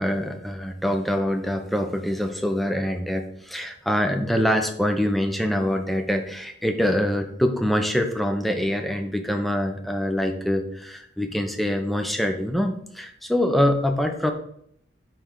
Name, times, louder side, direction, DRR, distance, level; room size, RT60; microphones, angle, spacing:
voice 1, 0.0-14.3, equal, ahead, 5 dB, 0.6 m, -24 dB
9.0 x 3.3 x 3.7 m, 0.71 s
head